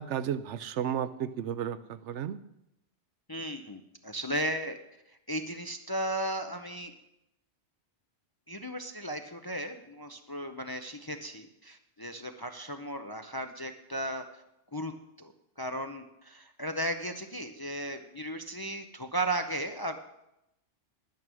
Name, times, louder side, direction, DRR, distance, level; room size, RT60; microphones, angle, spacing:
voice 1, 0.0-2.4, right 9 dB, 75° right, 13 dB, 0.9 m, -33 dB
voice 2, 3.3-4.8 5.3-6.9 8.5-14.4 14.7-20.0, right 1 dB, 25° left, 6 dB, 0.5 m, -35 dB
10.5 x 9.5 x 6.2 m, 0.86 s
omnidirectional pair, 1.2 m